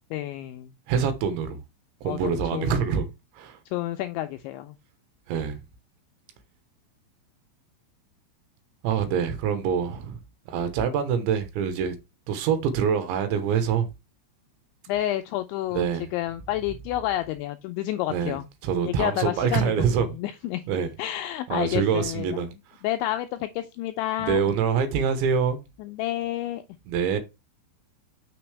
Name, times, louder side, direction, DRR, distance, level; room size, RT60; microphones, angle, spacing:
voice 1, 0.1-0.7 2.1-2.8 3.7-4.8 14.9-18.5 18.9-19.7 20.1-20.6 21.0-22.4 22.8-24.4 25.8-26.6, left 14 dB, 90° left, 2.6 m, -29 dB
voice 2, 0.9-1.6 2.0-3.1 3.3-3.6 5.3-5.6 8.8-10.2 10.5-12.0 12.3-13.9 15.7-16.1 18.1-20.1 20.7-20.9 21.5-22.5 24.2-25.6 26.9-27.2, right 7 dB, 75° right, 3.1 m, -25 dB
6.9 x 6.5 x 3.2 m
omnidirectional pair, 5.9 m